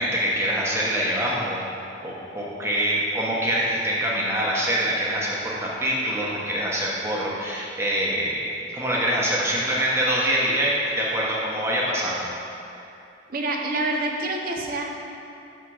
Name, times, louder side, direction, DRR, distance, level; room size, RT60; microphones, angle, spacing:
voice 1, 0.0-1.7 2.0-12.2, right 1 dB, 15° right, -5 dB, 1.0 m, -25 dB
voice 2, 13.3-14.8, right 2 dB, 50° right, 1 dB, 0.7 m, -27 dB
6.7 x 3.6 x 6.2 m, 2.8 s
head